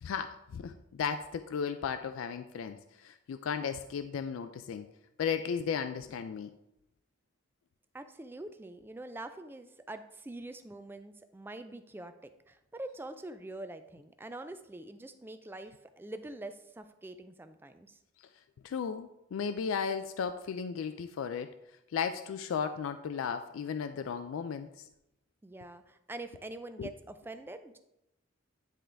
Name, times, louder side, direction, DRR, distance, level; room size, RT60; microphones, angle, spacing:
voice 1, 0.0-4.9 5.2-6.5 18.6-21.5 21.9-24.7 26.8-26.9, left 6 dB, 80° left, 9 dB, 0.3 m, -35 dB
voice 2, 7.9-18.0 25.4-27.8, right 2 dB, 10° right, 9 dB, 0.3 m, -45 dB
10.0 x 3.7 x 3.3 m, 0.87 s
head